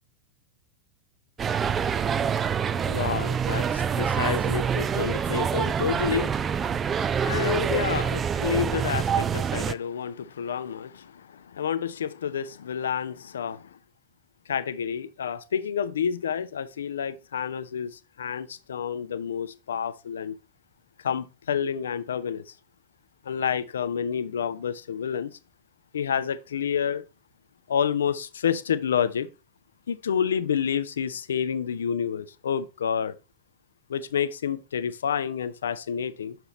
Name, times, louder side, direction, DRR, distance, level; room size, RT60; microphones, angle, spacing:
sound 1, 1.4-9.7, right 7 dB, 20° right, 0.4 m, -26 dB
voice 1, 2.6-13.8 14.5-20.3 21.0-22.5 23.3-25.3 25.9-27.0 27.7-29.3 29.9-33.1 33.9-36.4, left 8 dB, 65° left, 0.5 m, -29 dB
6.8 x 5.8 x 3.1 m
figure-of-eight pair, 90°, 0 cm